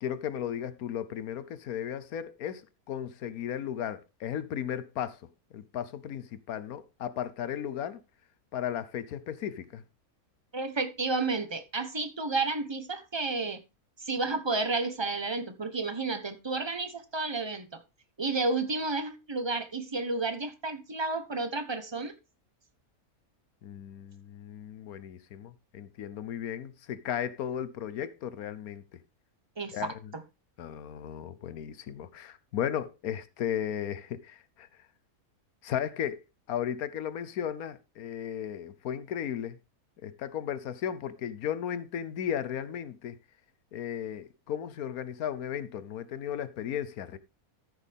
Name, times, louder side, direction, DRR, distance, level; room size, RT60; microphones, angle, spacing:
voice 1, 0.0-5.2 5.5-8.0 8.5-9.8 23.6-28.8 29.7-30.1 30.6-34.7 35.6-39.6 40.0-43.2 43.7-47.2, left 9 dB, 80° left, 1.3 m, -35 dB
voice 2, 10.5-13.6 14.0-17.8 18.2-22.1 29.6-29.8, right 3 dB, 20° right, 1.0 m, -31 dB
14.0 x 6.6 x 3.6 m
omnidirectional pair, 1.5 m